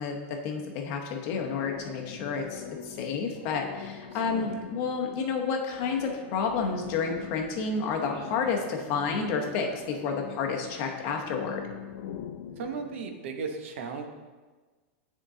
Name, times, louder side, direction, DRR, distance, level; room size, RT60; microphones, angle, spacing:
voice 1, 0.0-11.7, left 5 dB, 40° left, 2 dB, 0.8 m, -30 dB
sound 1, 1.3-13.0, left 9 dB, 70° left, 0.5 m, -43 dB
voice 2, 4.3-4.6 12.6-14.1, right 5 dB, 75° right, 5 dB, 0.8 m, -36 dB
9.5 x 3.7 x 3.8 m, 1.3 s
supercardioid pair, 165°, 7 cm